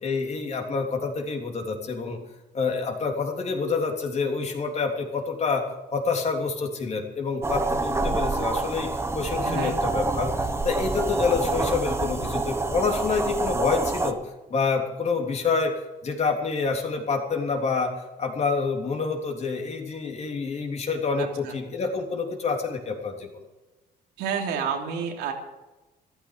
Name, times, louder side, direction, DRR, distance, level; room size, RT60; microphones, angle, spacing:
voice 1, 0.0-2.2 2.5-5.6 5.9-8.9 9.1-10.3 10.6-14.2 14.5-15.7 16.0-17.9 18.2-23.3, left 4 dB, 40° left, 3 dB, 3.3 m, -27 dB
sound 1, 7.4-14.1, right 3 dB, 15° right, 1.3 m, -27 dB
voice 2, 9.4-9.8 21.2-21.5 24.2-25.3, right 6 dB, 90° right, 2 dB, 3.1 m, -30 dB
14.0 x 13.0 x 6.7 m, 1.1 s
cardioid pair, 110°, 17 cm